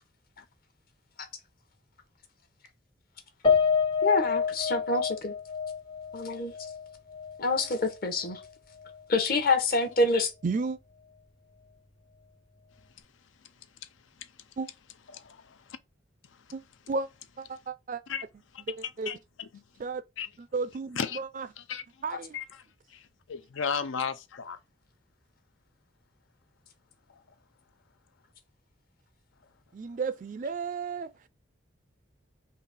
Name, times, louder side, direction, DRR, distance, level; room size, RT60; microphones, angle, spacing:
Piano, 3.4-7.9 8.3-8.4 8.8-9.0, left 6 dB, 25° left, 0.5 m, -28 dB
voice 1, 4.0-5.3 6.1-6.5 7.4-8.4 9.1-10.3, left 3 dB, 50° left, 0.8 m, -26 dB
voice 2, 10.4-10.8 14.6-14.7 16.5-16.6 16.9-17.1 17.4-18.0 18.7-19.1 19.8-20.0 20.4-21.5 22.0-22.4 29.7-31.3, right 4 dB, 40° right, 0.3 m, -33 dB
voice 3, 15.1-15.6 18.1-18.2 19.1-19.6 20.2-20.3 21.0-21.2 21.7-21.8 22.3-22.5 22.9-23.0 23.3-24.6, left 6 dB, 85° left, 0.5 m, -34 dB
3.9 x 2.7 x 4.0 m
head